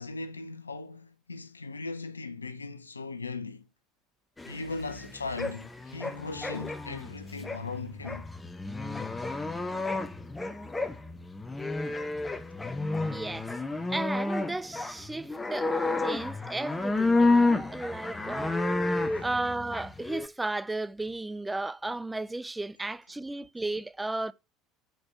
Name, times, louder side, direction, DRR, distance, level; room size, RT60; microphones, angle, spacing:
voice 1, 0.0-3.7 4.5-8.3 19.0-19.3 23.3-23.4, left 3 dB, 85° left, 0.4 m, -38 dB
sound 1, 4.4-20.3, left 2 dB, 15° left, 0.7 m, -30 dB
voice 2, 13.1-13.5 13.9-15.7 16.0-18.6 19.2-24.3, right 2 dB, 10° right, 0.3 m, -34 dB
4.7 x 4.3 x 5.4 m
figure-of-eight pair, 65°, 0 cm